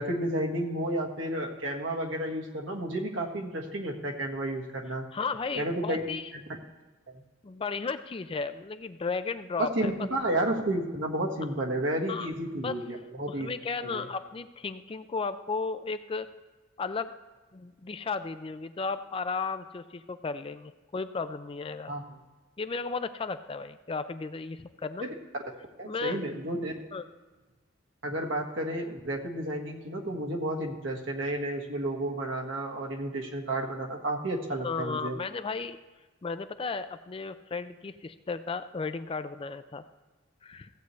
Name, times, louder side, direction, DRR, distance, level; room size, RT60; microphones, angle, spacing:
voice 1, 0.0-5.0 5.5-6.0 6.3-6.4 7.1-7.2 9.6-13.5 13.8-14.1 21.9-22.0 25.0-25.1 25.8-26.7 28.0-35.2, right 1 dB, 70° right, 1 dB, 1.6 m, -31 dB
voice 2, 5.1-6.3 7.4-9.9 12.1-12.3 12.6-12.7 13.3-16.3 16.8-17.1 17.5-21.9 22.6-25.1 25.9-26.2 26.9-27.1 34.6-35.8 36.2-39.8 40.4-40.7, left 4 dB, 25° left, 11 dB, 0.4 m, -34 dB
15.5 x 8.1 x 3.2 m, 1.3 s
head